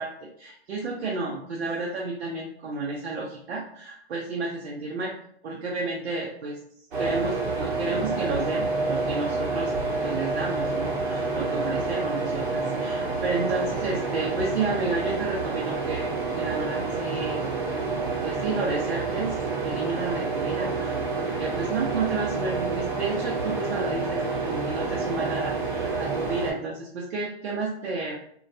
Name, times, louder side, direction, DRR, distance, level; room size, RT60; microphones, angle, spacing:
voice 1, 0.0-5.1 5.4-6.6 7.0-9.7 10.0-16.1 16.3-17.4 18.2-19.4 19.6-28.2, right 3 dB, 75° right, -2 dB, 0.6 m, -31 dB
sound 1, 6.9-26.5, right 3 dB, 50° right, 0.9 m, -28 dB
2.2 x 2.1 x 2.6 m, 0.67 s
hypercardioid pair, 135°, 32 cm